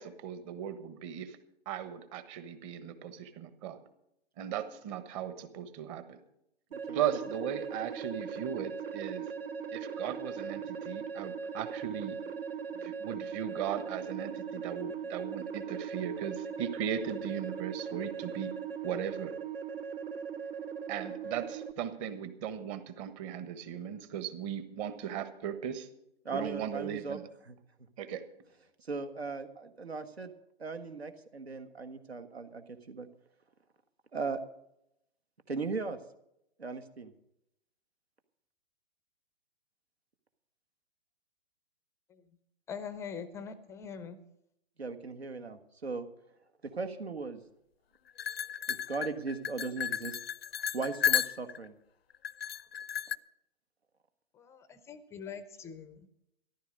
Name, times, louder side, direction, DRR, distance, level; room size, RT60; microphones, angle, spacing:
voice 1, 0.0-1.4 1.6-3.8 4.4-6.2 6.9-9.2 9.7-12.2 12.7-18.5 18.8-19.3 20.9-25.9 26.3-27.2 28.0-28.2, right 9 dB, 30° right, 11 dB, 1.3 m, -37 dB
sound 1, 6.7-21.7, right 6 dB, 65° right, 1.0 m, -39 dB
voice 2, 26.2-27.2 27.5-27.6 28.9-30.3 30.6-33.1 34.1-34.4 35.5-36.0 36.6-37.1 44.8-46.1 46.6-47.4 48.7-50.2 50.7-51.7, right 4 dB, 85° right, 9 dB, 1.6 m, -38 dB
voice 3, 42.7-44.2 54.3-56.3, left 6 dB, 10° left, 14 dB, 0.5 m, -43 dB
sound 2, 48.2-51.7 52.2-53.2, left 8 dB, 75° left, 0.6 m, -33 dB
14.0 x 12.0 x 5.3 m, 0.80 s
figure-of-eight pair, 125°, 31 cm